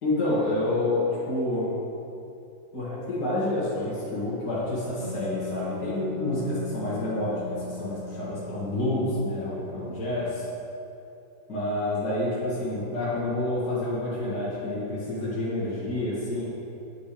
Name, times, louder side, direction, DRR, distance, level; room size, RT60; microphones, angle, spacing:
voice 1, 0.0-1.7 2.7-10.4 11.5-16.5, left 1 dB, 60° left, -10 dB, 2.6 m, -28 dB
Wind instrument woodwind instrument, 5.0-10.4, left 5 dB, 70° right, 0.4 m, -38 dB
8.8 x 8.7 x 3.4 m, 2.7 s
omnidirectional pair, 2.0 m